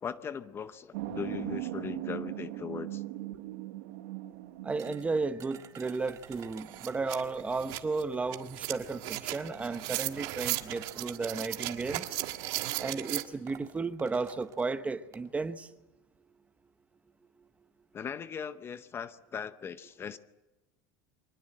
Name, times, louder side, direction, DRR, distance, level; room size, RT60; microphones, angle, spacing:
voice 1, 0.0-3.0 17.9-20.2, left 7 dB, 25° left, 0.7 m, -39 dB
sound 1, 0.9-5.9, right 16 dB, 80° right, 1.3 m, -39 dB
voice 2, 4.6-12.0 12.8-15.7, right 4 dB, 15° right, 0.9 m, -34 dB
sound 2, 4.8-7.5 8.6-8.7 9.3-11.4 12.3-12.6 12.8-12.9 13.2-15.3, right 9 dB, 35° right, 1.8 m, -52 dB
Metal + Plastic Creepy Texture, 5.9-6.0 6.3-13.2, right 17 dB, 55° right, 1.6 m, -37 dB
24.5 x 19.5 x 7.7 m
supercardioid pair, 145°, 10 cm